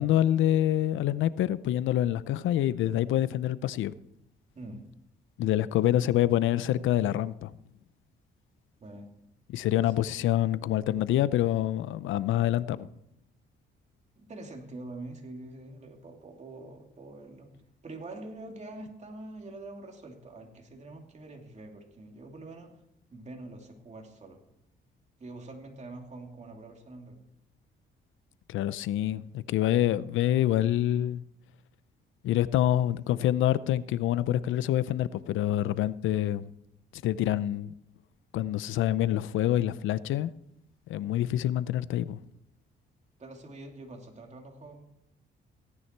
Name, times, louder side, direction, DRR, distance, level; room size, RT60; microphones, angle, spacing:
voice 1, 0.0-3.9 5.4-7.5 9.5-12.9 28.5-31.2 32.2-36.5 37.0-37.7 38.3-40.3 40.9-42.2, left 12 dB, 80° left, 0.6 m, -26 dB
voice 2, 4.5-4.9 8.8-9.1 9.8-9.9 14.2-17.5 17.8-22.7 23.1-24.4 25.2-27.2 43.2-44.8, right 2 dB, 35° right, 2.9 m, -45 dB
17.0 x 9.7 x 4.5 m
cardioid pair, 90°, 20 cm